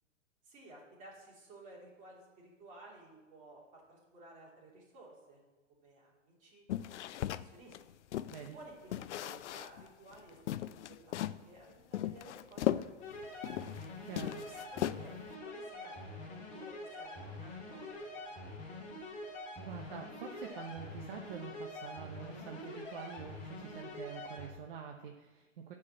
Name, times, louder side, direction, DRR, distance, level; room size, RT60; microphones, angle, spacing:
voice 1, 0.4-5.4 5.7-6.6 7.0-7.8 8.4-13.2 13.5-13.7 14.5-15.1 15.4-18.1 18.4-18.9, right 2 dB, 20° right, -4 dB, 3.2 m, -56 dB
sound 1, 6.7-8.5 8.9-9.9 10.1-10.2 10.5-11.4 11.9-13.8 14.1-15.3, left 12 dB, 65° left, 0.5 m, -37 dB
sound 2, 13.0-24.5, left 2 dB, 20° left, 2.5 m, -45 dB
voice 2, 14.0-14.5 19.5-25.7, right 7 dB, 45° right, 3 dB, 1.0 m, -46 dB
10.0 x 5.0 x 7.6 m, 1.1 s
hypercardioid pair, 150°, 38 cm